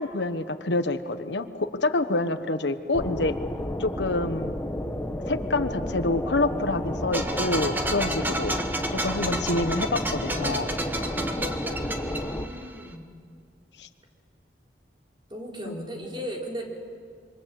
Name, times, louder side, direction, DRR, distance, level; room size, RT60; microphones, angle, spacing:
voice 1, 0.0-3.3 3.8-4.5 5.3-8.6 8.9-10.7 13.8-13.9 15.7-15.8, left 2 dB, 85° left, 10 dB, 1.2 m, -27 dB
sound 1, 2.9-12.5, left 1 dB, 15° left, 1.2 m, -32 dB
sound 2, 7.1-12.9, right 1 dB, 10° right, 1.5 m, -31 dB
voice 2, 11.8-13.1 15.3-16.6, equal, 25° right, -1 dB, 4.2 m, -37 dB
26.5 x 24.5 x 7.7 m, 2.1 s
head